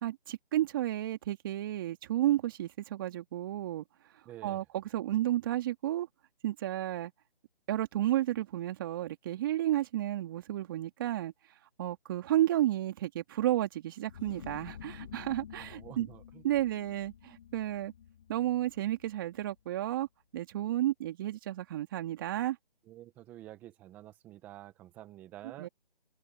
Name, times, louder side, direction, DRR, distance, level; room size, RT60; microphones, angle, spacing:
voice 1, 0.0-3.8 4.4-6.1 6.4-7.1 7.7-11.3 11.8-16.1 16.4-17.9 18.3-20.1 20.3-22.6 25.4-25.7, right 13 dB, 20° right, 2.8 m, -32 dB
voice 2, 4.2-4.6 15.5-16.4 22.9-25.7, right 14 dB, 5° right, 1.1 m, -49 dB
sound 1, 14.1-19.6, left 9 dB, 30° left, 4.2 m, -50 dB
figure-of-eight pair, 160°, 30 cm